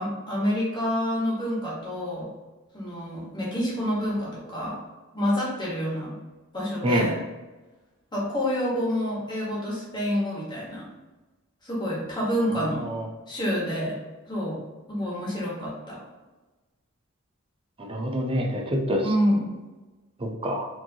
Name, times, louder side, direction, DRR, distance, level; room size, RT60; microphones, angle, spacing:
voice 1, 0.0-2.3 2.7-4.8 5.1-6.2 6.5-7.2 8.1-10.9 11.6-12.9 13.3-14.0 14.2-14.6 14.9-16.0 19.0-19.4, equal, 20° left, -6 dB, 1.3 m, -28 dB
voice 2, 17.8-19.0 20.2-20.7, equal, 25° right, 2 dB, 0.5 m, -26 dB
4.5 x 2.9 x 2.8 m, 1.2 s
head